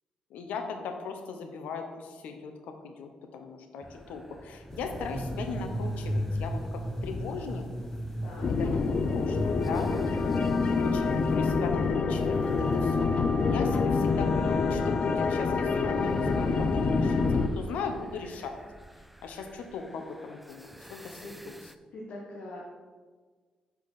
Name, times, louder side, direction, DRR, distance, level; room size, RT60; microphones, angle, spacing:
voice 1, 0.3-9.9 10.2-18.6 19.2-21.6, left 5 dB, 90° left, 5 dB, 0.7 m, -39 dB
sound 1, 3.8-21.7, equal, 5° right, 0.4 m, -39 dB
sound 2, 4.7-11.4, left 1 dB, 20° left, 1.0 m, -44 dB
sound 3, 8.4-17.5, left 4 dB, 50° left, 0.5 m, -26 dB
voice 2, 21.9-22.7, left 1 dB, 70° left, -5 dB, 1.3 m, -42 dB
6.3 x 4.6 x 4.1 m, 1.5 s
cardioid pair, 75°, 2 cm